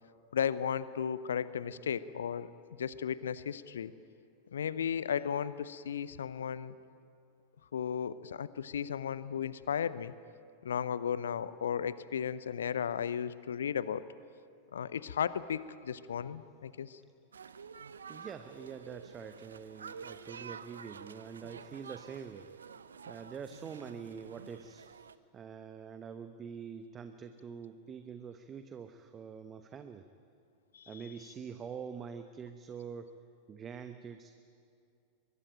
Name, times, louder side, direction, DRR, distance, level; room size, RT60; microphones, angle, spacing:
voice 1, 0.3-2.5 2.8-3.9 4.5-6.7 7.7-10.1 10.6-14.0 14.7-17.0 30.7-30.9, left 8 dB, 65° left, 17 dB, 0.7 m, -35 dB
sound 1, 17.3-25.2, right 6 dB, 70° right, 0.8 m, -49 dB
voice 2, 18.1-22.5 23.1-24.9 25.3-30.1 30.9-33.1 33.5-34.3, right 6 dB, 25° right, 9 dB, 1.0 m, -45 dB
23.0 x 22.5 x 9.0 m, 2.4 s
figure-of-eight pair, 90°, 0 cm